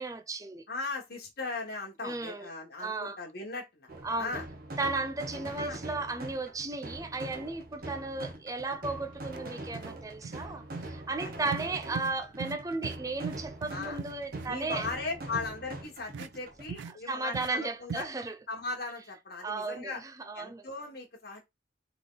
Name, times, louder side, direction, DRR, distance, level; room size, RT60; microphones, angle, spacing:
voice 1, 0.0-0.6 2.0-2.5 2.8-3.2 4.0-4.4 4.8-14.9 17.1-18.4 19.4-20.7, right 3 dB, 20° right, 0.5 m, -35 dB
voice 2, 0.7-3.9 4.2-4.5 5.4-5.8 11.2-11.3 13.7-14.0 14.4-18.1 18.5-20.0 20.3-21.5, left 3 dB, 55° left, 1.5 m, -38 dB
sound 1, 3.9-16.7, right 1 dB, 50° right, 1.1 m, -43 dB
sound 2, 9.3-9.4 9.7-10.0 10.2-10.5 10.7-10.9 11.5-11.7 11.9-12.1 12.4-12.6 12.8-13.0 13.2-14.5 14.8-14.9 15.3-15.5 16.1-16.3 16.7-16.9 17.3-17.5 17.9-18.0, right 6 dB, 75° right, 0.3 m, -39 dB
3.7 x 3.3 x 3.9 m
head